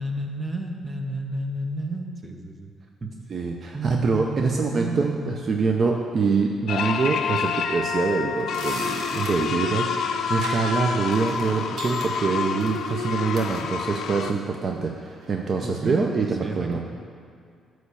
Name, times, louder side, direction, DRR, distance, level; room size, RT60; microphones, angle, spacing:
voice 1, 0.0-2.7 3.0-3.1 3.7-5.3 15.6-16.1 16.4-16.8, right 2 dB, 25° right, 3 dB, 0.9 m, -31 dB
voice 2, 3.3-16.8, right 4 dB, 45° right, 1 dB, 0.5 m, -25 dB
sound 1, 6.7-14.3, left 6 dB, 65° left, 0.4 m, -28 dB
sound 2, 8.3-9.6 10.2-10.8 11.1-13.7 14.6-14.8 15.2-15.4, right 3 dB, 75° right, 1.2 m, -39 dB
9.4 x 3.2 x 6.8 m, 2.3 s
cardioid pair, 90°, 0 cm